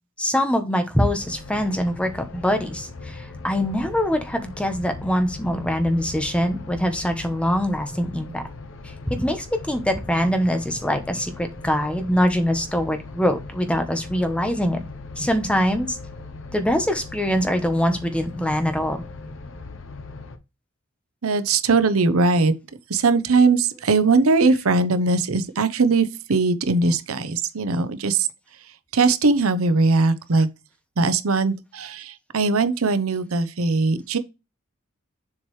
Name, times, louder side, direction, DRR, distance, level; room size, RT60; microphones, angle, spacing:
voice 1, 0.2-8.4 9.1-14.8 15.2-16.0 16.5-19.0, equal, 5° left, 0.9 m, -23 dB
sound 1, 1.0-20.4, left 3 dB, 65° left, 0.9 m, -39 dB
voice 2, 21.2-22.5 22.9-28.3 28.9-30.5 31.0-34.2, right 3 dB, 80° right, 0.8 m, -20 dB
7.2 x 4.7 x 3.2 m
head